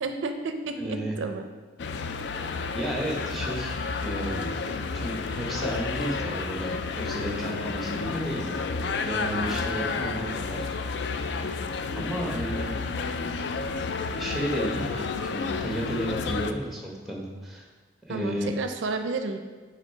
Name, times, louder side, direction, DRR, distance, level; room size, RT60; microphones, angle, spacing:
voice 1, 0.0-1.4 18.1-19.4, right 3 dB, 75° right, 7 dB, 0.4 m, -31 dB
voice 2, 0.8-1.2 2.7-8.5 8.8-10.7 11.9-12.7 14.1-17.7 18.1-18.5, right 1 dB, ahead, -2 dB, 0.9 m, -33 dB
sound 1, 1.8-16.5, left 4 dB, 60° left, 0.3 m, -31 dB
5.9 x 3.9 x 4.5 m, 1.3 s
head